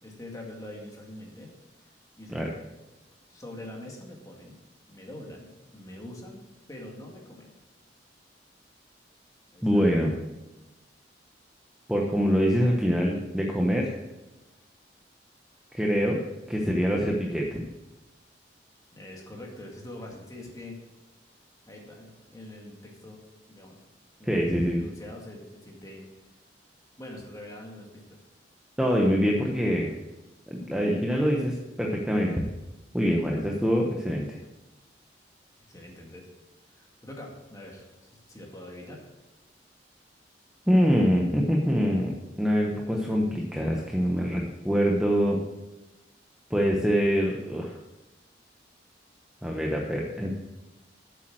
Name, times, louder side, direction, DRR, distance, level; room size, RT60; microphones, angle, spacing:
voice 1, 0.0-1.5 2.2-2.5 3.3-4.6 4.9-6.4 6.7-7.5 9.5-9.8 18.9-20.8 21.7-23.2 23.5-23.8 24.2-26.0 27.0-28.2 35.6-36.3 36.7-39.1, left 1 dB, 20° left, -1 dB, 2.1 m, -44 dB
voice 2, 9.6-10.1 11.9-13.9 15.7-16.2 16.5-17.6 24.2-24.8 28.8-29.9 30.5-32.4 32.9-34.4 40.7-45.4 46.5-47.8 49.4-50.4, equal, 5° right, -1 dB, 0.9 m, -24 dB
8.5 x 7.5 x 6.3 m, 1.0 s
head